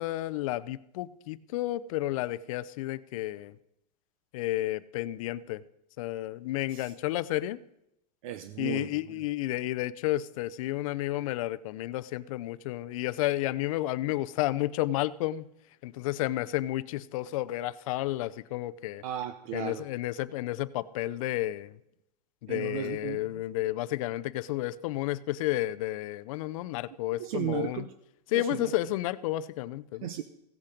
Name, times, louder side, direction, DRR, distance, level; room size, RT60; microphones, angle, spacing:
voice 1, 0.0-3.6 4.3-5.6 6.0-7.6 8.6-15.5 15.8-19.0 19.5-21.8 22.4-27.9 28.3-30.2, left 15 dB, 55° left, 16 dB, 0.6 m, -31 dB
voice 2, 8.2-8.9 19.0-19.8 22.5-23.2 27.2-27.9 28.3-28.7 30.0-30.2, right 11 dB, 55° right, 11 dB, 0.8 m, -35 dB
16.0 x 8.4 x 5.1 m, 0.82 s
supercardioid pair, 145°, 21 cm